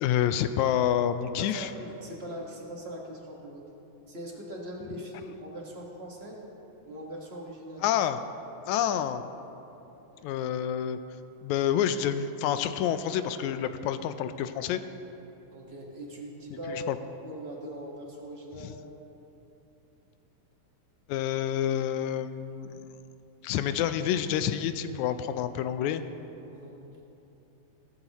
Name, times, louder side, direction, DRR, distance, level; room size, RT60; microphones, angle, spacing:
voice 1, 0.0-1.7 7.8-8.2 8.7-9.2 10.2-11.0 11.4-14.8 16.7-17.0 18.6-18.7 21.1-22.8 23.4-26.0, left 10 dB, 85° left, 11 dB, 1.9 m, -28 dB
voice 2, 1.4-3.6 4.1-6.5 6.8-7.9 10.0-10.3 15.5-16.9 17.2-18.8 26.5-26.8, equal, 30° right, -2 dB, 1.2 m, -41 dB
18.0 x 13.5 x 3.0 m, 3.0 s
omnidirectional pair, 3.3 m